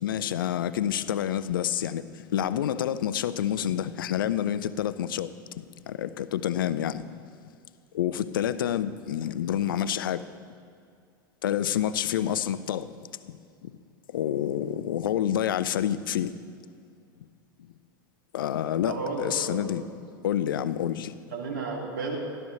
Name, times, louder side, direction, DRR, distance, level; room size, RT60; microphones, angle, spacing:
voice 1, 0.0-2.0 2.3-5.3 5.9-7.0 7.9-10.2 11.4-12.9 14.1-16.3 18.3-19.8 20.2-21.1, left 10 dB, 80° left, 0.4 m, -28 dB
voice 2, 18.9-19.6 21.3-22.2, right 4 dB, 70° right, 2.5 m, -32 dB
13.5 x 11.5 x 3.2 m
hypercardioid pair, 90°, 11 cm